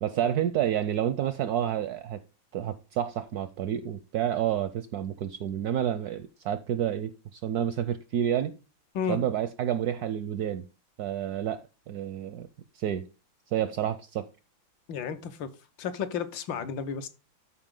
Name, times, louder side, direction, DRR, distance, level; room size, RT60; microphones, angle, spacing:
voice 1, 0.0-2.2 2.5-8.5 9.1-10.7 11.0-12.5 12.7-13.1 13.5-14.3, right 10 dB, 70° right, 0.9 m, -29 dB
voice 2, 14.9-15.5 15.8-17.1, left 7 dB, 75° left, 1.6 m, -32 dB
13.0 x 4.8 x 3.7 m
omnidirectional pair, 2.1 m